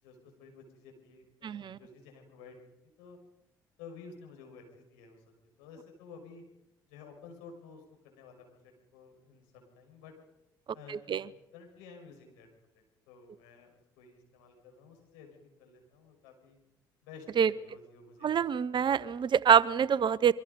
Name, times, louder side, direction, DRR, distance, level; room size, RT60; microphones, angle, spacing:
voice 1, 0.0-2.6 3.0-3.2 3.8-5.2 5.6-6.4 6.9-10.1 10.7-11.2 11.5-12.5 12.7-16.6 17.0-17.3 17.6-18.8, left 5 dB, 80° left, 2 dB, 6.2 m, -52 dB
voice 2, 1.4-1.8 10.9-11.2 17.4-17.5 18.2-20.3, right 8 dB, 50° right, 19 dB, 1.0 m, -25 dB
26.5 x 24.0 x 5.4 m, 0.90 s
hypercardioid pair, 50°, 10 cm